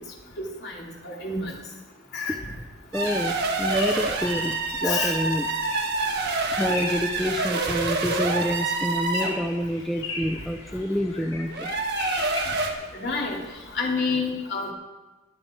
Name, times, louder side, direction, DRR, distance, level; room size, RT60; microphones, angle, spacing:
voice 1, 0.6-1.5 2.1-2.4 4.8-5.1 12.9-13.4 13.7-14.7, left 4 dB, 55° left, -2 dB, 3.1 m, -28 dB
voice 2, 2.9-5.5 6.5-11.7, equal, ahead, 4 dB, 0.4 m, -28 dB
sound 1, 2.9-9.4 11.5-12.7, right 3 dB, 55° right, 1.7 m, -27 dB
sound 2, 3.0-13.9, left 3 dB, 80° left, 3.8 m, -38 dB
21.5 x 7.7 x 4.6 m, 1.2 s
head